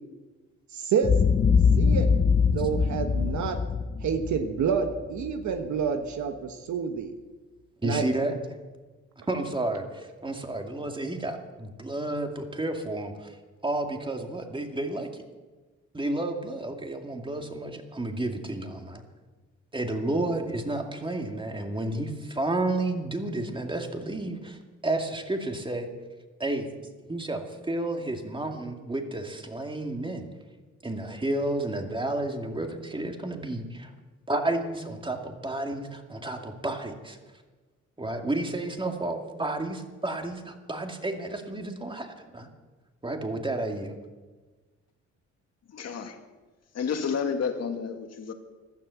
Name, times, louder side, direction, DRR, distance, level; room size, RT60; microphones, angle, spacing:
voice 1, 0.7-1.1 1.8-2.1 2.5-3.6 4.0-7.1 7.8-8.0, right 7 dB, 70° right, 6 dB, 1.3 m, -28 dB
Boom, 1.0-5.3, left 5 dB, 30° left, 0.7 m, -23 dB
voice 2, 7.8-8.3 9.3-13.4 13.6-15.2 15.9-19.0 19.7-25.9 26.4-26.7 27.1-30.3 30.8-33.9 34.3-37.2 38.0-42.5 43.0-44.0, right 2 dB, 15° right, 4 dB, 2.2 m, -31 dB
voice 3, 45.7-46.2 46.7-48.3, left 6 dB, 55° left, 6 dB, 2.0 m, -30 dB
15.5 x 12.5 x 7.0 m, 1.3 s
cardioid pair, 90°, 30 cm